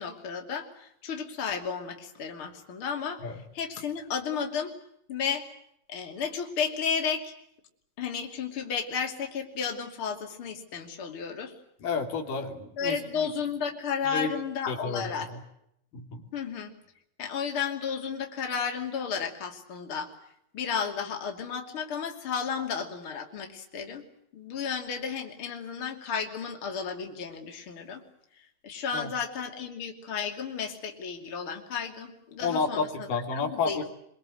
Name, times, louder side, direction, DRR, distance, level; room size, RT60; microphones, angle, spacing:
voice 1, 0.0-4.7 5.1-5.4 5.9-7.3 8.0-11.5 12.8-15.3 16.3-16.7 17.2-20.1 20.5-24.0 24.3-28.0 28.6-33.9, left 6 dB, 40° left, 3 dB, 3.5 m, -33 dB
voice 2, 11.8-13.3 14.0-14.3 14.7-15.0 15.9-16.2 28.9-29.1 32.4-33.9, left 5 dB, 85° left, 3 dB, 4.5 m, -31 dB
25.5 x 23.5 x 7.9 m, 0.74 s
omnidirectional pair, 3.7 m